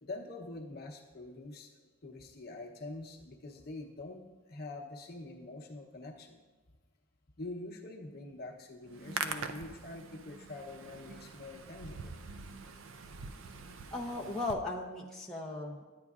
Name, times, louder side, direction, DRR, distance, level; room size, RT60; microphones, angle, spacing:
voice 1, 0.0-6.4 7.4-12.1, left 2 dB, 50° left, 1 dB, 0.8 m, -45 dB
Hands, 8.9-14.5, right 5 dB, 70° right, 0.5 m, -43 dB
voice 2, 13.9-15.8, left 2 dB, 5° left, -4 dB, 0.6 m, -37 dB
11.0 x 9.4 x 2.4 m, 1.3 s
head